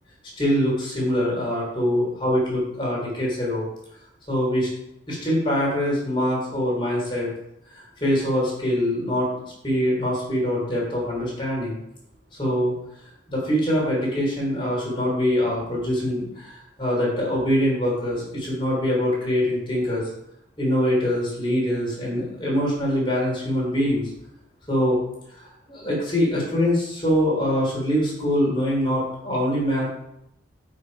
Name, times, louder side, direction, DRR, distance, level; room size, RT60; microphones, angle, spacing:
voice 1, 0.4-3.6 4.3-4.7 5.1-7.3 7.7-11.8 12.3-12.7 13.3-20.1 20.6-24.1 24.7-25.0 25.3-29.9, equal, 25° left, -4 dB, 3.3 m, -24 dB
7.9 x 5.1 x 5.3 m, 0.80 s
head